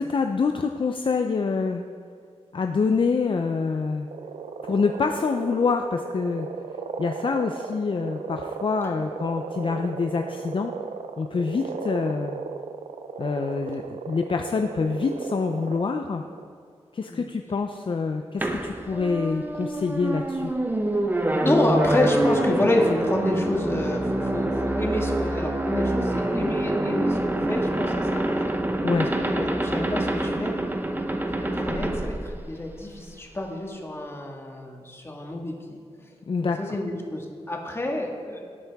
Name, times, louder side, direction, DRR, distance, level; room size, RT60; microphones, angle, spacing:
voice 1, 0.0-1.8 2.5-4.1 4.6-6.5 7.0-10.7 11.2-12.4 13.2-16.2 16.9-20.5 28.8-29.1 36.3-36.6, left 4 dB, 50° left, 5 dB, 0.5 m, -26 dB
sound 1, 4.1-16.4, right 5 dB, 90° right, 0.6 m, -36 dB
sound 2, 18.4-33.0, right 1 dB, 15° right, 0.8 m, -26 dB
voice 2, 21.4-28.6 29.0-30.5 31.3-35.8 36.4-38.5, left 1 dB, 20° left, 1 dB, 1.7 m, -28 dB
18.0 x 8.5 x 3.6 m, 2.1 s
wide cardioid pair, 120°, 11 cm